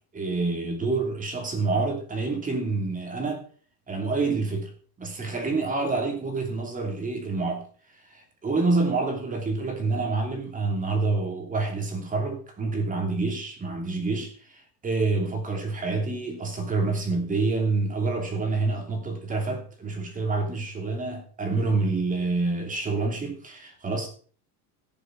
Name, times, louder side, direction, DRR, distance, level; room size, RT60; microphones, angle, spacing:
voice 1, 0.1-3.4 3.9-4.7 5.0-7.7 8.1-24.1, right 3 dB, 15° right, 2.9 m, -27 dB
16.5 x 7.1 x 5.2 m
cardioid pair, 155°, 47 cm